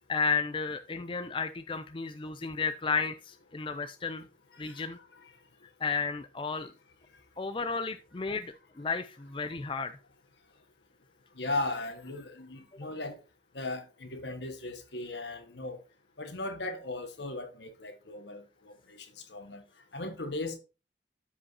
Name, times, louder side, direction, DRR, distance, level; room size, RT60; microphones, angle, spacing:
voice 1, 0.1-4.3 4.6-5.0 5.8-6.7 7.4-9.9, left 5 dB, 30° left, 0.4 m, -33 dB
voice 2, 11.4-13.2 13.5-15.8 16.2-19.6 19.9-20.6, left 2 dB, 75° left, 1.5 m, -37 dB
13.0 x 5.1 x 2.8 m
head